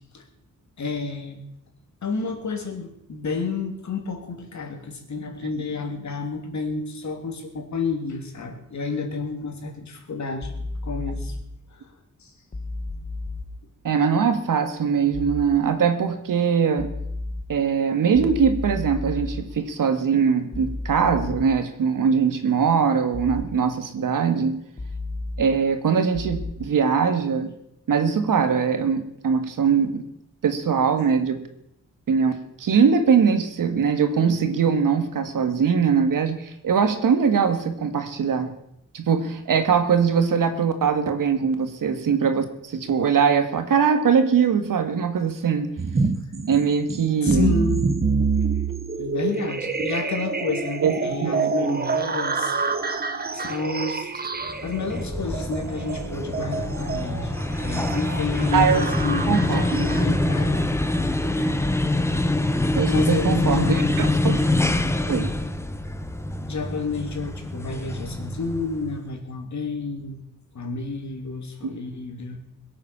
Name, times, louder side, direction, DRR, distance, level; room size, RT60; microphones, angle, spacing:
voice 1, 0.8-1.4 2.0-10.5 10.8-11.4 11.7-11.9 12.2-12.3 47.2-47.9 49.0-52.6 53.3-54.1 54.6-57.3 57.6-60.7 62.8-64.2 66.5-70.2 70.5-72.4, left 4 dB, 60° left, 4 dB, 3.1 m, -30 dB
sound 1, 10.4-11.4 12.5-13.4 15.1-15.4 16.8-17.4 18.1-19.4 20.5-21.4 23.1-23.4 24.8-25.4 26.1-26.5, left 2 dB, 25° left, 1.3 m, -32 dB
voice 2, 13.8-16.9 17.5-24.6 25.4-27.5 27.9-30.0 30.4-31.4 32.1-38.5 38.9-45.7 46.4-47.5 50.8-51.8 58.5-58.9 59.3-59.9 62.8-64.5 65.1-65.3 71.6-71.7, right 6 dB, 80° right, 8 dB, 1.8 m, -22 dB
sound 2, 45.8-60.4, right 4 dB, 30° right, 1.3 m, -27 dB
sound 3, 54.5-69.0, left 2 dB, 10° left, 1.0 m, -25 dB
21.5 x 8.5 x 7.0 m, 0.78 s
wide cardioid pair, 130°, 32 cm